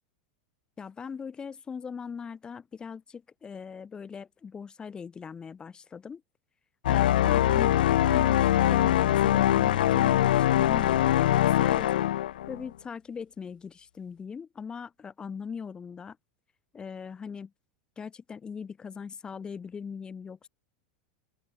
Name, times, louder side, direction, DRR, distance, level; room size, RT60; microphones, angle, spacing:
voice 1, 0.8-6.2 6.8-10.3 10.5-12.1 12.5-16.2 16.7-17.5 18.0-20.5, left 6 dB, 20° left, 6.5 m, -40 dB
sound 1, 6.8-12.7, left 12 dB, 90° left, 0.5 m, -23 dB
supercardioid pair, 135°, 5 cm